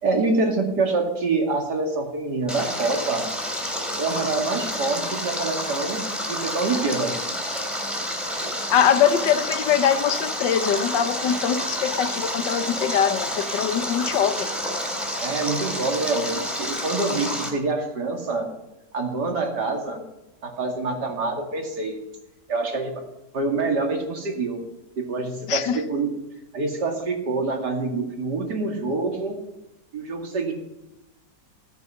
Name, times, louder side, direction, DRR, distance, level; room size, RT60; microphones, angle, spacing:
voice 1, 0.0-3.3 4.0-7.1 15.2-18.5 18.9-20.0 20.4-22.0 22.5-23.0 23.3-24.6 25.0-26.1 26.5-29.4 29.9-30.5, right 3 dB, 70° right, 2 dB, 2.9 m, -26 dB
Stream, 2.5-17.5, equal, ahead, 3.3 m, -29 dB
voice 2, 8.7-14.5 25.5-25.8, left 8 dB, 85° left, 11 dB, 1.6 m, -22 dB
16.5 x 9.5 x 5.7 m, 0.96 s
omnidirectional pair, 1.9 m